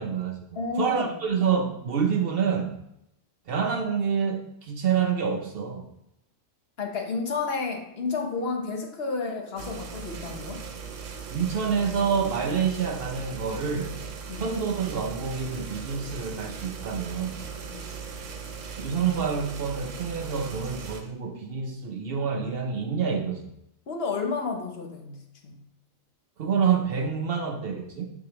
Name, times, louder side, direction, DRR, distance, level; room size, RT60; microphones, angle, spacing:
voice 1, 0.0-0.4 0.8-2.7 3.5-5.9 11.3-14.0 14.3-17.5 18.8-23.4 26.4-28.1, right 6 dB, 55° right, 4 dB, 0.7 m, -27 dB
voice 2, 0.6-1.2 6.8-10.7 14.3-14.5 17.7-17.8 23.9-25.2 25.4-25.6, left 4 dB, 55° left, 3 dB, 1.0 m, -31 dB
sound 1, 9.6-21.0, right 6 dB, 75° right, 1.1 m, -38 dB
6.5 x 6.1 x 2.9 m, 0.81 s
omnidirectional pair, 1.3 m